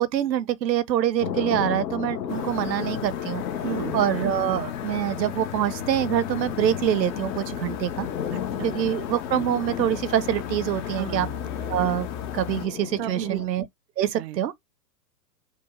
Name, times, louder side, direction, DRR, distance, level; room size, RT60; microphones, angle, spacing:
voice 1, 0.0-3.4 3.9-8.1 8.6-11.3 11.6-12.1 12.3-13.7 14.0-14.5, right 10 dB, 85° right, 0.7 m, -25 dB
sound 1, 1.2-13.5, left 8 dB, 80° left, 0.9 m, -34 dB
sound 2, 2.3-12.7, left 10 dB, 30° left, 0.5 m, -35 dB
voice 2, 3.6-3.9 8.3-8.8 11.0-11.4 13.0-13.4 14.0-14.4, right 11 dB, 40° right, 0.5 m, -33 dB
4.5 x 2.2 x 2.8 m
hypercardioid pair, 115°, 49 cm